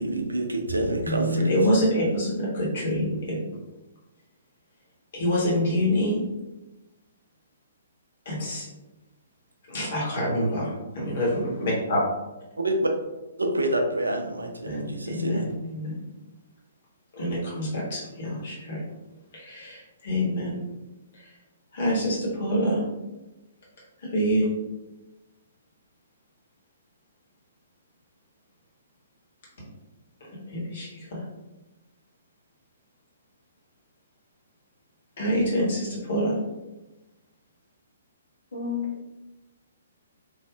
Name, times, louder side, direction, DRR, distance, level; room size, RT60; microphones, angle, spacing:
voice 1, 0.0-1.5 12.6-12.9 13.4-15.5, right 1 dB, 80° right, 3 dB, 0.5 m, -27 dB
voice 2, 1.0-3.4 5.1-6.2 8.2-8.6 9.7-12.0 14.6-16.0 17.1-18.8 19.3-20.6 21.7-22.8 24.0-24.5 30.3-31.2 35.2-36.4, equal, 50° left, -4 dB, 1.3 m, -26 dB
voice 3, 38.5-39.1, left 6 dB, 75° left, -4 dB, 1.2 m, -31 dB
3.2 x 2.5 x 2.3 m, 1.0 s
figure-of-eight pair, 125°, 0 cm